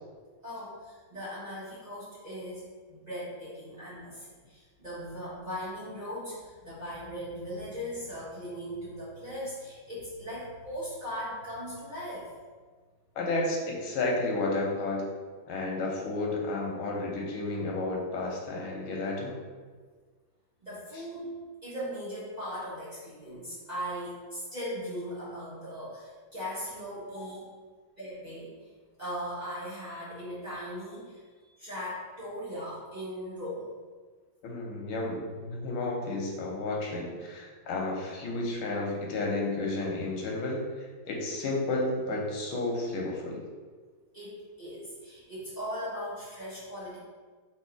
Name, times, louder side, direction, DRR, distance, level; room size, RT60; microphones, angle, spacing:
voice 1, 0.4-12.3 20.6-21.3 21.6-27.5 28.0-28.7 29.0-33.7 44.1-47.0, equal, 30° right, -10 dB, 0.9 m, -39 dB
voice 2, 13.1-15.1 15.5-19.4 34.4-43.4, left 2 dB, 85° left, -1 dB, 1.7 m, -32 dB
3.6 x 3.0 x 4.5 m, 1.5 s
omnidirectional pair, 2.2 m